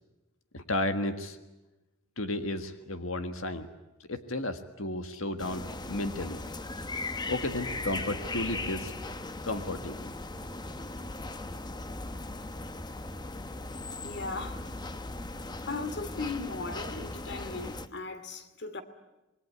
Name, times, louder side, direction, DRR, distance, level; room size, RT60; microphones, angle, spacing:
voice 1, 0.5-1.4 2.2-3.7 4.1-6.4 7.3-8.9 9.4-10.0, left 2 dB, 75° left, 1.7 m, -33 dB
sound 1, 5.4-17.9, left 2 dB, 20° left, 1.0 m, -38 dB
voice 2, 14.0-14.6 15.6-18.8, left 3 dB, 55° left, 2.5 m, -37 dB
27.0 x 22.0 x 9.5 m
head